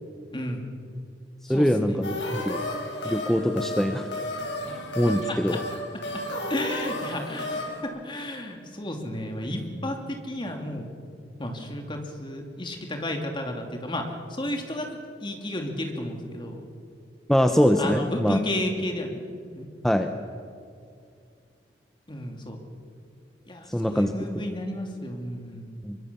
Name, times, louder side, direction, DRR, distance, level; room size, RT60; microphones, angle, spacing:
voice 1, 0.3-0.6 1.5-2.0 4.6-4.7 5.3-5.6 6.5-10.0 10.2-10.9 11.4-14.9 15.2-16.7 17.8-19.2 19.5-19.7 22.1-22.6 23.5-25.7, left 1 dB, 25° left, 3 dB, 2.9 m, -32 dB
voice 2, 1.5-2.6 3.0-4.1 4.7-5.6 17.3-18.4 19.8-20.1 23.7-24.1 25.8-26.0, equal, ahead, 5 dB, 0.8 m, -23 dB
sound 1, 2.0-7.8, left 1 dB, 85° left, 5.5 m, -33 dB
24.0 x 23.5 x 7.0 m, 2.3 s
head